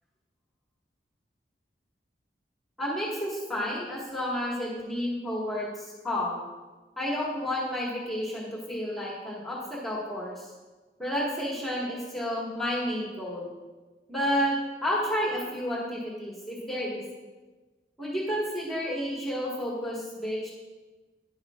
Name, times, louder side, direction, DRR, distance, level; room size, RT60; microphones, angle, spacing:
voice 1, 2.8-6.4 7.0-10.4 11.0-13.5 14.1-14.5 14.8-17.0 18.0-20.5, equal, ahead, -6 dB, 1.7 m, -31 dB
10.5 x 10.5 x 2.5 m, 1.2 s
head